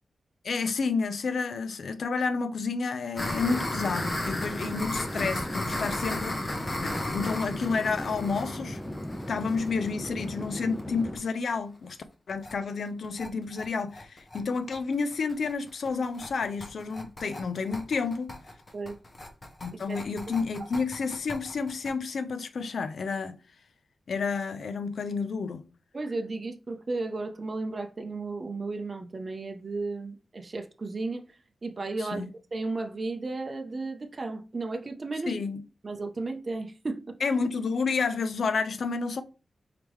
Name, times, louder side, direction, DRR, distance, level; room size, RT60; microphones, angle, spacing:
voice 1, 0.4-8.8 9.3-12.0 12.3-18.4 19.6-23.4 24.1-25.6 32.0-32.3 35.3-35.6 37.2-39.2, left 4 dB, 70° left, 0.5 m, -30 dB
sound 1, 3.2-10.8 11.2-11.3 11.5-11.6 11.9-12.0 12.3-12.5 12.9-21.9, left 1 dB, 35° left, 1.0 m, -36 dB
Conversation / Chatter / Fixed-wing aircraft airplane, 3.2-11.2, equal, 5° left, 0.6 m, -37 dB
voice 2, 25.9-31.2 31.6-35.3 35.8-37.2, right 3 dB, 40° right, 0.6 m, -34 dB
4.8 x 3.5 x 3.1 m
wide cardioid pair, 95°, 0 cm